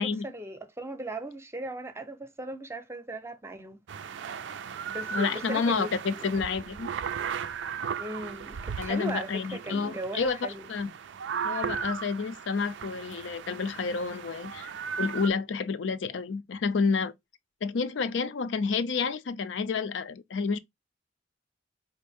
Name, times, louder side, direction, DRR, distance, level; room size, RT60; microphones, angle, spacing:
voice 1, 0.0-4.3 4.9-6.4 8.0-10.7, right 1 dB, 15° right, 0.6 m, -38 dB
sound 1, 3.9-15.3, right 7 dB, 75° right, 0.4 m, -37 dB
voice 2, 5.1-6.9 8.8-10.4 10.7-10.9 11.4-14.7 15.0-17.1 17.6-20.6, left 5 dB, 75° left, 0.4 m, -29 dB
4.5 x 2.5 x 3.4 m
head